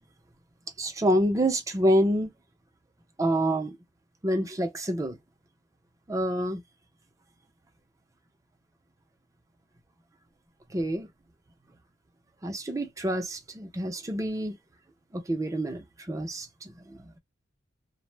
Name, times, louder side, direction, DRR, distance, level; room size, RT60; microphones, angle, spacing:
voice 1, 0.8-2.3 3.2-3.8 4.2-5.2 6.1-6.6 10.7-11.1 12.4-14.6 15.1-17.1, equal, 15° right, 0.4 m, -27 dB
2.0 x 2.0 x 3.1 m
head